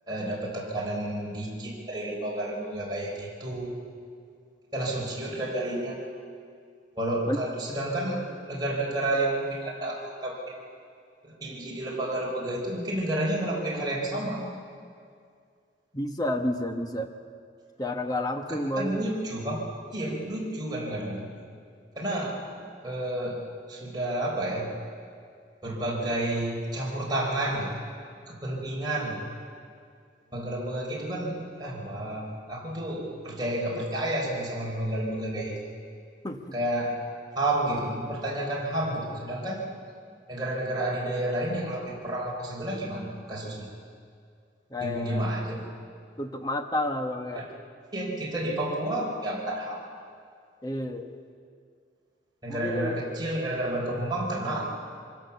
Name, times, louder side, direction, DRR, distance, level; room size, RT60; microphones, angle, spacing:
voice 1, 0.1-3.8 4.7-6.0 6.9-10.6 11.3-14.5 18.8-21.3 21.9-22.4 22.8-24.7 25.6-27.7 28.3-29.2 30.3-35.5 36.5-36.9 37.3-39.7 40.3-43.7 44.8-45.6 47.3-47.4 47.9-49.8 52.4-54.6, right 1 dB, 20° right, -4 dB, 4.5 m, -30 dB
voice 2, 15.9-17.1 17.8-19.1 36.2-36.5 44.7-45.2 46.2-47.5 50.6-51.1 52.5-52.9, left 1 dB, 20° left, 5 dB, 1.2 m, -30 dB
24.5 x 16.0 x 7.1 m, 2.2 s
head